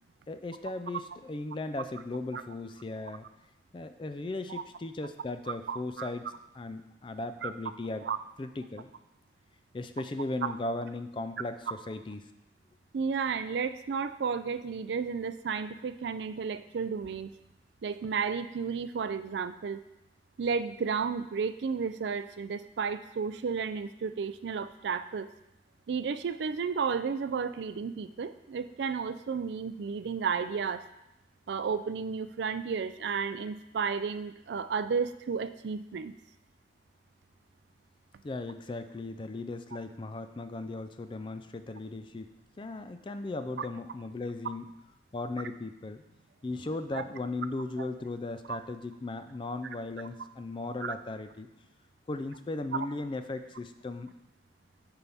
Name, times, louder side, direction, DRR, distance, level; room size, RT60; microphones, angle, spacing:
voice 1, 0.3-3.3 3.7-8.1 8.4-8.9 9.7-12.3 38.2-42.3 42.6-44.7 45.1-46.0 46.4-51.5 52.1-54.1, left 2 dB, 30° left, 10 dB, 0.4 m, -37 dB
voice 2, 5.5-6.1 7.4-7.5 8.0-8.2 10.4-10.5 12.9-17.3 17.8-19.8 20.4-25.3 25.9-30.8 31.5-36.1 46.9-47.0 47.8-47.9 48.5-48.6 50.8-50.9 52.7-52.9, right 5 dB, 75° right, 12 dB, 0.4 m, -32 dB
9.0 x 5.4 x 3.5 m, 0.88 s
head